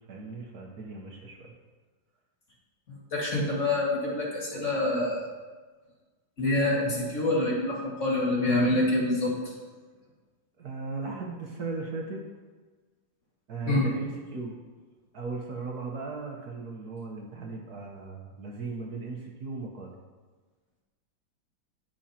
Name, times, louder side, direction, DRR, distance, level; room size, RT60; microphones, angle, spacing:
voice 1, 0.1-1.5 10.6-12.2 13.5-14.6 15.1-19.9, right 3 dB, 55° right, 0 dB, 1.4 m, -37 dB
voice 2, 2.9-5.3 6.4-9.5 13.7-13.9, left 2 dB, 40° left, -4 dB, 2.2 m, -26 dB
17.5 x 6.3 x 2.9 m, 1.3 s
omnidirectional pair, 2.1 m